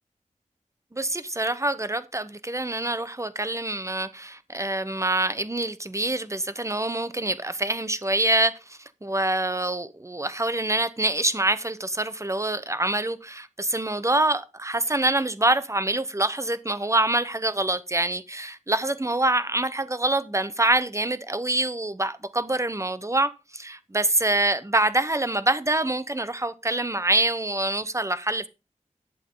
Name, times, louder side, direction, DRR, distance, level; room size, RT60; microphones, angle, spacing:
voice 1, 0.9-28.5, right 2 dB, 20° right, 1.0 m, -25 dB
11.0 x 7.1 x 3.8 m
wide cardioid pair, 50°, 13 cm